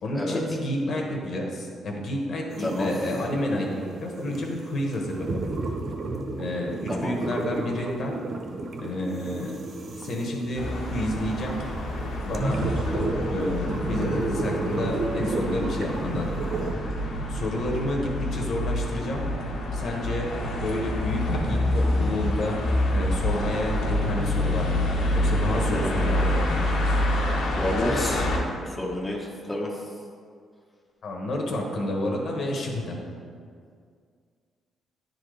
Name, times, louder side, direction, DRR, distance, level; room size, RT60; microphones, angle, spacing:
voice 1, 0.0-5.4 6.4-8.1 8.8-9.5 10.0-11.6 12.2-12.6 12.9-16.4 17.3-19.2 19.7-20.3 20.6-22.6 22.9-24.8 25.1-26.7 27.7-28.0 31.0-33.0, left 1 dB, 60° left, 0 dB, 1.2 m, -30 dB
sound 1, 2.5-16.7, right 2 dB, 50° right, 0.6 m, -32 dB
sound 2, 10.6-28.4, left 1 dB, 75° left, 1.1 m, -27 dB
voice 2, 27.6-29.7, left 1 dB, 10° left, -3 dB, 1.0 m, -30 dB
9.8 x 4.0 x 3.3 m, 2.1 s
cardioid pair, 90°, 0 cm